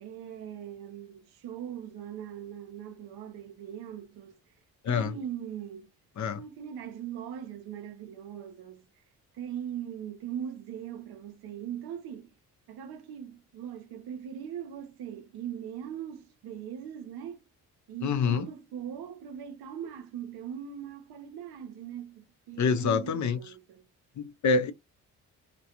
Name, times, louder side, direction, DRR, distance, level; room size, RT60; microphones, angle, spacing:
voice 1, 0.0-4.4 4.9-5.9 6.3-9.0 9.3-12.3 12.7-17.4 17.9-23.9, right 9 dB, 65° right, 0.7 m, -40 dB
voice 2, 18.0-18.4 22.6-23.4 24.2-24.7, left 5 dB, 45° left, 0.6 m, -26 dB
2.3 x 2.2 x 2.8 m
hypercardioid pair, 50°, 40 cm